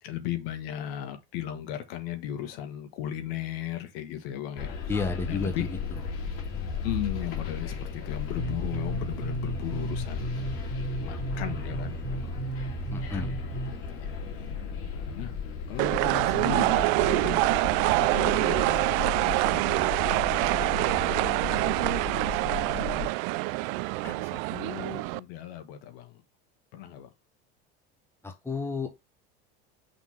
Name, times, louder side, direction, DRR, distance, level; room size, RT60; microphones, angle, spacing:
voice 1, 0.0-4.7 5.3-5.7 6.8-10.3 11.0-12.4 12.9-14.1 14.9-15.3 15.7-17.4 18.0-18.8 19.2-20.0 20.5-21.9 22.7-23.1 24.0-26.2 26.7-27.1, left 12 dB, 75° left, 1.6 m, -37 dB
sound 1, 4.6-23.1, left 6 dB, 45° left, 2.3 m, -35 dB
voice 2, 4.9-6.0 12.9-13.4 24.0-24.2 28.2-28.9, left 4 dB, 10° left, 1.3 m, -32 dB
sound 2, 8.3-13.7, right 3 dB, 15° right, 2.2 m, -34 dB
sound 3, 15.8-25.2, right 21 dB, 65° right, 0.4 m, -25 dB
5.9 x 3.5 x 5.8 m
supercardioid pair, 120°, 30 cm